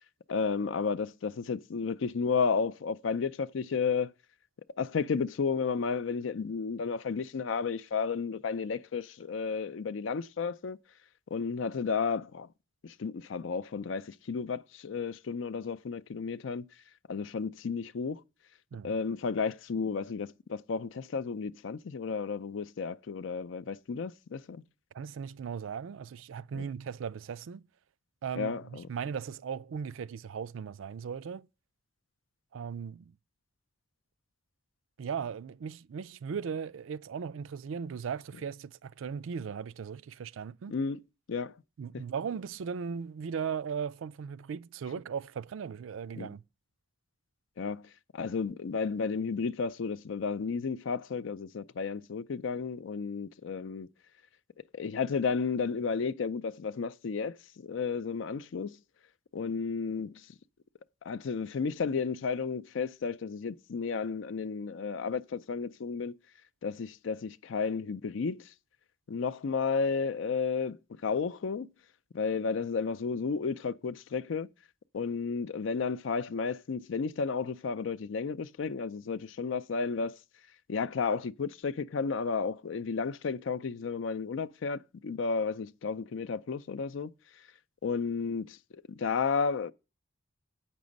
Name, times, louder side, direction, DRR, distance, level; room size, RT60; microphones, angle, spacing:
voice 1, 0.3-4.1 4.8-10.8 11.3-12.5 12.8-16.7 17.1-18.2 18.8-24.6 26.5-26.6 28.4-28.9 40.7-41.0 41.3-41.5 46.2-46.3 47.6-47.8 48.1-53.9 54.7-58.8 59.3-60.3 61.0-66.1 66.6-68.5 69.1-71.7 72.1-74.5 74.9-80.2 80.7-87.1 87.8-89.7, left 5 dB, 70° left, 0.4 m, -32 dB
voice 2, 24.9-27.7 28.2-31.5 32.5-33.2 35.0-40.8 41.8-46.4, right 6 dB, 90° right, 0.4 m, -37 dB
8.6 x 6.1 x 5.2 m
head